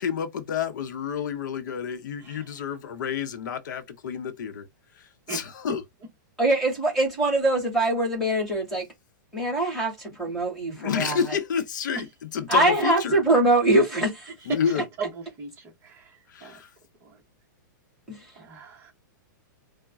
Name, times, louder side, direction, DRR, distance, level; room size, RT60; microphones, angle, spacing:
voice 1, 0.0-4.7 5.0-5.8 10.7-13.2 14.5-14.8 16.3-16.7, left 7 dB, 65° left, 0.7 m, -29 dB
voice 2, 6.4-8.9 9.3-11.2 12.5-14.3 18.1-18.2, right 2 dB, ahead, 1.8 m, -23 dB
voice 3, 15.4-16.5 17.0-17.1 18.4-18.9, right 4 dB, 20° right, 0.9 m, -38 dB
3.9 x 2.1 x 3.5 m
supercardioid pair, 165°, 11 cm